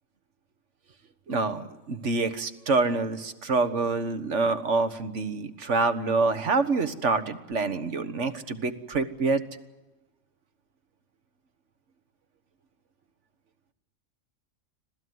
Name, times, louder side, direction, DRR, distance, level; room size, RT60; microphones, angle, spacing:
voice 1, 1.3-9.4, right 3 dB, 65° right, 10 dB, 1.7 m, -26 dB
26.0 x 17.5 x 9.5 m, 1.1 s
omnidirectional pair, 1.4 m